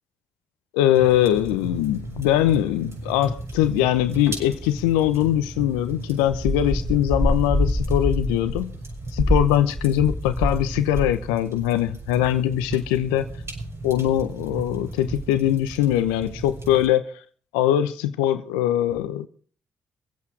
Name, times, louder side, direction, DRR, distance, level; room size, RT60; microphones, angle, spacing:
voice 1, 0.7-8.7 9.1-13.3 13.8-17.1 17.5-19.3, left 12 dB, 85° left, 0.8 m, -22 dB
sound 1, 0.9-16.9, right 2 dB, 45° right, 6.8 m, -36 dB
sound 2, 6.3-10.6 10.9-11.3, equal, 5° left, 3.5 m, -25 dB
25.0 x 8.4 x 4.7 m
hypercardioid pair, 40°, 6 cm